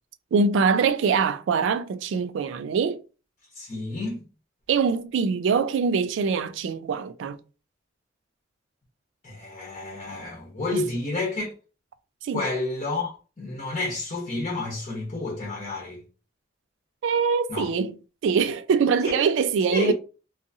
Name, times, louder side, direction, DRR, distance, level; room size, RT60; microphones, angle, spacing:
voice 1, 0.3-3.0 4.7-7.4 10.7-10.8 12.2-12.4 17.0-18.0 18.2-19.9, right 5 dB, 75° right, 0.3 m, -23 dB
voice 2, 3.5-4.2 9.2-11.5 12.3-16.0 17.5-17.7 19.0-19.2 19.7-19.9, left 2 dB, 35° left, 0.8 m, -30 dB
2.6 x 2.4 x 2.6 m
head